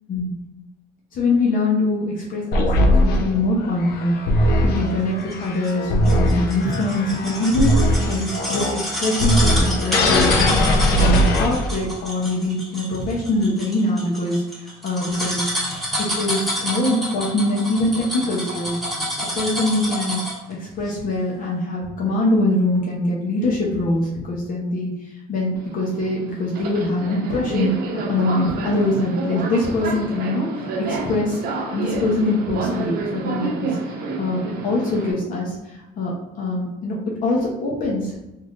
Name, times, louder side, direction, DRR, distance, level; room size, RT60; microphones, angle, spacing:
voice 1, 1.1-15.5 16.0-18.8 19.3-20.2 20.5-24.9 25.3-31.4 31.7-38.2, left 2 dB, 55° left, -4 dB, 0.9 m, -23 dB
sound 1, 2.5-11.9, equal, 70° left, 0.5 m, -20 dB
sound 2, 5.3-20.5 20.9-21.0, equal, ahead, 1.3 m, -28 dB
Subway metro underground, 25.6-35.1, right 3 dB, 65° right, 0.6 m, -29 dB
3.3 x 2.7 x 2.5 m, 0.96 s
cardioid pair, 110°, 17 cm